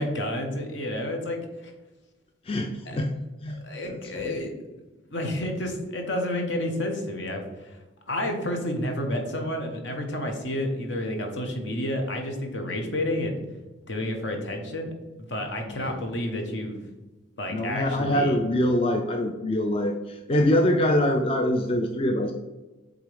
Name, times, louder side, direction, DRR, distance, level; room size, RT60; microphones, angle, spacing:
voice 1, 0.0-1.7 2.9-3.0 3.6-4.5 5.1-7.8 8.1-13.4 13.9-14.9 15.3-16.8 17.4-18.4, left 1 dB, 70° left, 3 dB, 1.1 m, -30 dB
voice 2, 2.4-3.1 3.4-4.4 15.7-16.0 17.5-22.3, left 1 dB, 30° left, 3 dB, 0.4 m, -25 dB
7.8 x 3.7 x 3.4 m, 1.1 s
head